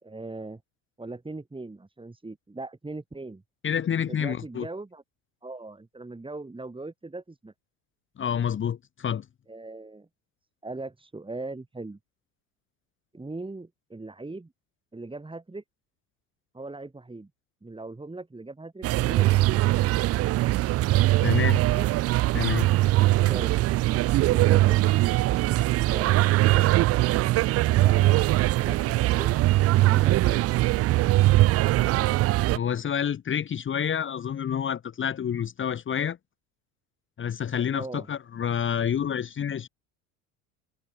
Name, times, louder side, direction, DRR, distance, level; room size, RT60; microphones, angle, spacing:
voice 1, 0.0-0.6 1.0-3.4 4.1-5.0 5.4-7.5 9.5-10.1 10.6-12.0 13.1-14.5 14.9-15.6 16.5-17.3 17.6-19.9 21.5-21.9 23.3-23.7 24.3-24.8 25.9-26.9 27.8-28.3 28.7-29.3 29.8-30.5 37.7-38.1, right 2 dB, 10° right, 4.5 m, -39 dB
voice 2, 3.6-4.7 8.2-9.2 21.2-21.6 22.3-22.7 32.5-36.2 37.2-39.7, left 8 dB, 30° left, 1.0 m, -28 dB
sound 1, 18.8-32.6, right 17 dB, 35° right, 0.5 m, -21 dB
hypercardioid pair, 75°, 42 cm